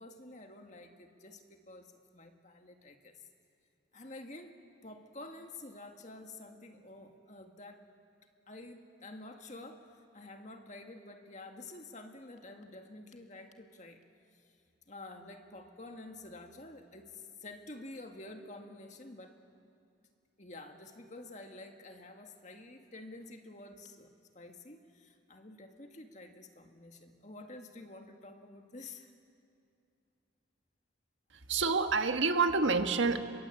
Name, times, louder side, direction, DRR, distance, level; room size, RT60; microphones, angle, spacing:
voice 1, 0.0-3.1 3.9-7.8 8.5-9.8 10.1-14.0 14.3-14.4 14.9-19.4 20.4-24.1 24.3-29.1, left 2 dB, 35° left, 4 dB, 1.9 m, -49 dB
voice 2, 31.5-33.2, right 4 dB, 75° right, 7 dB, 1.5 m, -28 dB
29.5 x 22.0 x 8.6 m, 2.6 s
head